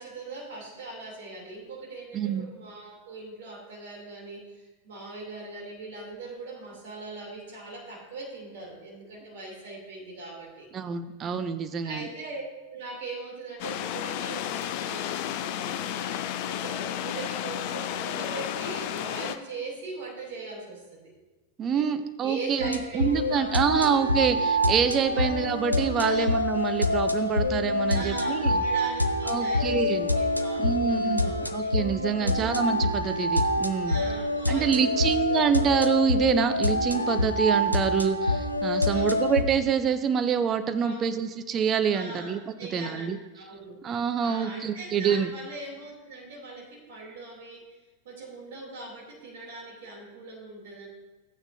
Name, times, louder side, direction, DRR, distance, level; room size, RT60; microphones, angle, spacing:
voice 1, 0.0-10.7 11.8-12.4 12.7-21.1 21.7-21.9 22.2-23.4 23.7-23.8 25.1-25.3 26.0-26.2 27.1-27.2 27.9-31.5 32.2-32.7 33.9-35.5 38.9-39.3 40.8-41.2 41.9-43.1 43.3-43.8 44.2-47.8 48.0-50.9, right 3 dB, 55° right, -2 dB, 2.9 m, -40 dB
voice 2, 2.1-2.5 10.7-12.1 21.6-28.5 29.3-30.1 30.6-31.2 31.5-34.0 34.5-42.4 42.7-43.2 43.8-45.3, right 7 dB, 25° right, 10 dB, 0.5 m, -26 dB
sound 1, 13.6-19.4, left 11 dB, 45° left, 0.5 m, -32 dB
sound 2, 22.6-39.4, left 1 dB, 90° right, 0.5 m, -26 dB
13.5 x 8.8 x 2.7 m, 1.2 s
figure-of-eight pair, 90°, 0 cm